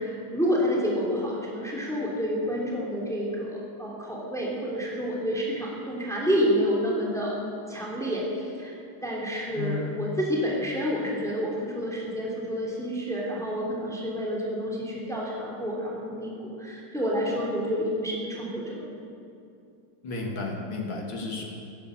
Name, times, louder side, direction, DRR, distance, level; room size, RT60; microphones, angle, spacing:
voice 1, 0.0-7.4 7.7-8.7 9.0-18.9, equal, ahead, -4 dB, 3.0 m, -29 dB
voice 2, 20.0-21.4, left 3 dB, 65° left, 0 dB, 3.0 m, -32 dB
15.5 x 11.5 x 7.7 m, 2.5 s
omnidirectional pair, 2.3 m